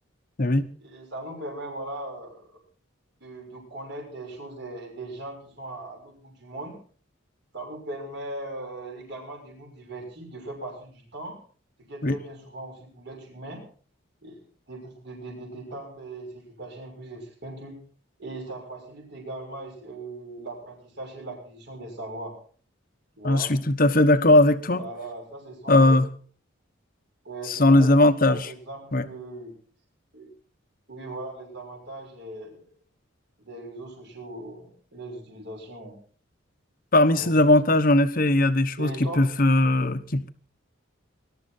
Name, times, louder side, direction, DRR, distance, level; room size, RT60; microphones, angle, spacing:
voice 1, 0.8-2.6 3.2-6.8 7.5-11.4 11.8-13.6 14.2-17.8 18.2-22.3 23.2-23.5 24.7-26.0 27.2-27.9 28.3-29.5 30.1-30.3 30.9-32.6 33.4-36.0 37.1-37.5 38.8-39.2, right 2 dB, 60° right, 1 dB, 6.3 m, -39 dB
voice 2, 23.2-24.8 25.7-26.1 27.5-28.5 28.9-29.0 36.9-40.3, left 1 dB, 45° left, 10 dB, 1.1 m, -19 dB
21.0 x 12.0 x 4.4 m, 0.44 s
head